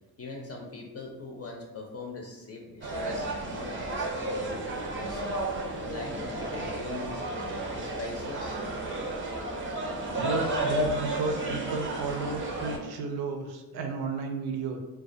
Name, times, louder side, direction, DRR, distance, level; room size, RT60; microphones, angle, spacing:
voice 1, 0.2-5.4 5.9-8.6, left 3 dB, 40° left, 0 dB, 0.5 m, -41 dB
sound 1, 2.8-12.8, right 1 dB, 35° right, 0.4 m, -32 dB
voice 2, 10.2-14.8, right 4 dB, 85° right, 4 dB, 0.5 m, -33 dB
2.2 x 2.2 x 2.5 m, 1.1 s
cardioid pair, 75°, 37 cm